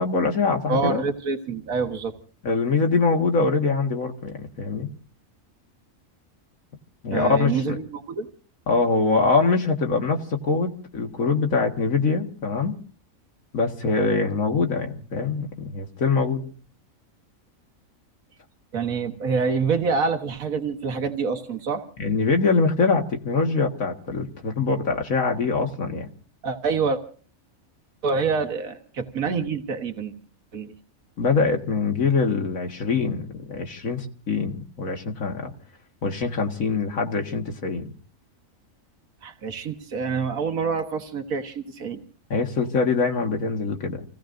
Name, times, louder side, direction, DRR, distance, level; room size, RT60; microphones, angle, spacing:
voice 1, 0.0-1.0 2.4-4.9 7.0-7.8 8.7-12.8 13.5-16.5 22.0-26.1 31.2-35.5 36.0-37.8 42.3-44.0, left 4 dB, 75° left, 3 dB, 2.0 m, -23 dB
voice 2, 0.7-2.1 7.1-8.3 18.7-21.8 26.4-27.0 28.0-30.1 30.5-30.7 39.2-42.0, right 5 dB, 85° right, 5 dB, 1.8 m, -26 dB
29.0 x 17.0 x 2.6 m, 0.40 s
omnidirectional pair, 1.4 m